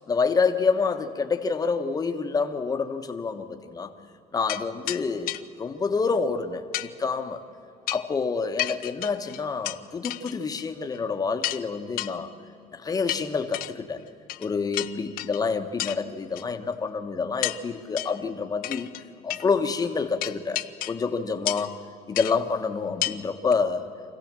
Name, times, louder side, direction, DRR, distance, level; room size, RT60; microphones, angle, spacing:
voice 1, 0.1-3.9 4.3-7.4 7.9-12.3 12.7-14.0 14.4-18.9 19.2-20.6 20.9-21.8 22.1-23.9, left 5 dB, 25° left, 7 dB, 1.2 m, -27 dB
sound 1, 4.5-4.6 4.9-5.0 5.3-5.4 6.7-6.9 7.9-8.1 8.6-9.8 10.0-10.6 10.9-11.0 11.4-11.6 12.0-12.1 13.1-13.7 14.3-14.5 14.7-15.4 15.8-16.0 16.4-16.5 17.4-17.6 18.0-18.2 18.6-19.0 19.3-19.5 20.2-21.0 21.5-21.7 22.2-22.4 23.0-23.2 23.5-23.6, left 16 dB, 80° left, 0.6 m, -31 dB
25.0 x 16.0 x 7.5 m, 2.8 s
cardioid pair, 135°, 15 cm